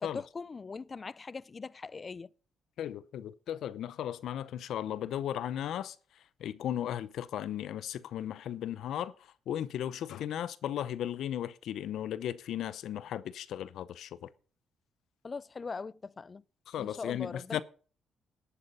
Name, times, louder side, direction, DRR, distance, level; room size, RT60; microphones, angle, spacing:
voice 1, 0.0-2.3 15.2-16.4 16.8-17.6, left 4 dB, 35° left, 0.4 m, -41 dB
voice 2, 2.8-6.0 6.4-9.1 9.5-14.3 16.7-17.6, left 10 dB, 75° left, 0.7 m, -36 dB
11.5 x 8.7 x 5.5 m
cardioid pair, 85°, 0 cm